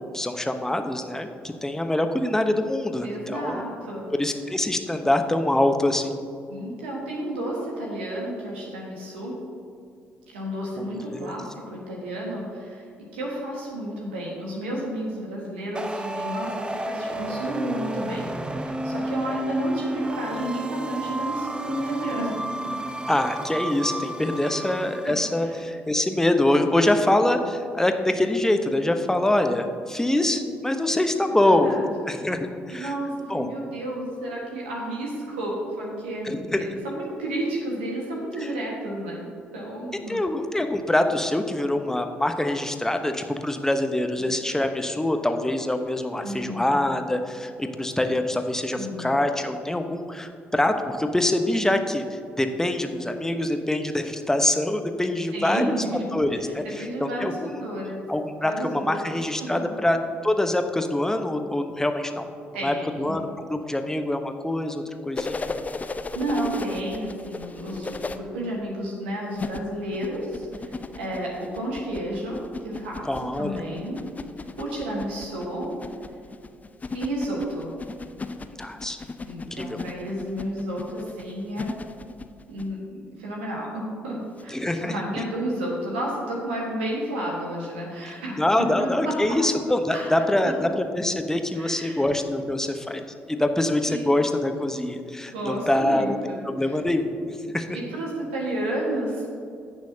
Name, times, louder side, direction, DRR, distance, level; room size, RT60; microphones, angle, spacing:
voice 1, 0.0-3.6 4.2-6.1 10.8-11.4 23.1-31.7 32.1-32.9 33.3-33.5 36.2-36.8 40.1-52.0 52.4-55.7 56.1-57.5 58.1-60.0 60.2-62.3 62.6-65.6 73.0-73.6 78.6-79.0 79.6-79.8 84.5-84.9 88.4-93.0 93.3-96.1 96.4-97.7, left 1 dB, 10° left, 6 dB, 1.0 m, -24 dB
voice 2, 3.0-4.1 6.5-9.4 10.3-12.9 13.1-22.3 22.6-22.7 24.4-24.6 25.0-25.1 25.4-25.6 31.3-31.9 32.2-32.3 32.7-39.3 39.5-40.2 46.2-46.8 48.7-49.1 55.3-58.0 58.4-58.9 59.4-59.5 62.5-63.2 66.1-74.0 74.6-75.7 76.9-77.7 79.2-81.7 82.5-89.2 89.9-90.1 91.5-92.0 93.8-94.1 95.3-96.8 97.7-99.3, right 1 dB, 80° right, -3 dB, 1.6 m, -31 dB
sound 1, 15.7-25.4, right 1 dB, 15° right, 0.7 m, -32 dB
sound 2, 65.1-68.2 69.3-82.7 84.4-84.5, left 3 dB, 25° left, 0.6 m, -36 dB
16.5 x 6.3 x 2.8 m, 2.4 s
figure-of-eight pair, 45°, 6 cm